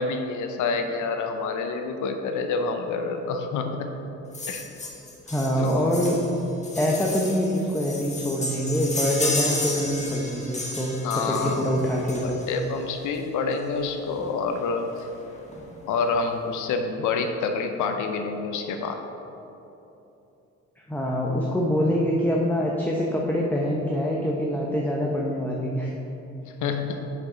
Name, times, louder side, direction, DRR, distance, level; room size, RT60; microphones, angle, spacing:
voice 1, 0.0-3.9 4.5-4.6 5.6-5.7 11.0-11.8 12.2-14.9 15.8-19.0 26.6-27.1, left 4 dB, 75° left, 5 dB, 0.6 m, -27 dB
sound 1, 4.3-12.7 13.8-13.9 14.2-14.3 14.5-14.7 15.0-15.6 16.1-16.2, left 2 dB, 25° left, 1.4 m, -33 dB
voice 2, 5.3-6.2 6.8-12.4 20.9-25.9, equal, 5° left, -3 dB, 0.8 m, -25 dB
6.5 x 5.1 x 5.1 m, 2.9 s
cardioid pair, 90°, 30 cm